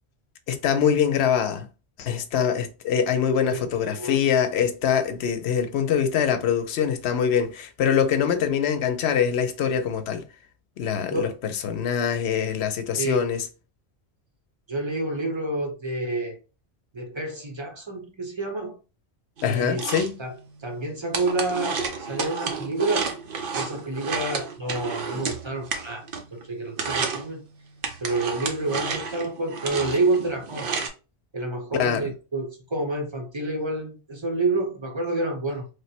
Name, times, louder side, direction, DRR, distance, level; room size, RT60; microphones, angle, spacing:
voice 1, 0.5-1.7 2.0-10.2 10.8-13.4 19.4-20.1 31.8-32.1, left 8 dB, 80° left, 0.9 m, -24 dB
voice 2, 14.7-16.4 16.9-18.8 19.4-19.8 20.2-20.3 20.6-23.1 23.5-26.0 26.3-27.4 28.0-30.7 31.3-35.7, right 2 dB, 30° right, 0.7 m, -28 dB
sound 1, 19.4-26.4 26.7-27.3 27.8-30.9, right 5 dB, 60° right, 0.8 m, -31 dB
3.3 x 2.1 x 4.2 m
omnidirectional pair, 1.1 m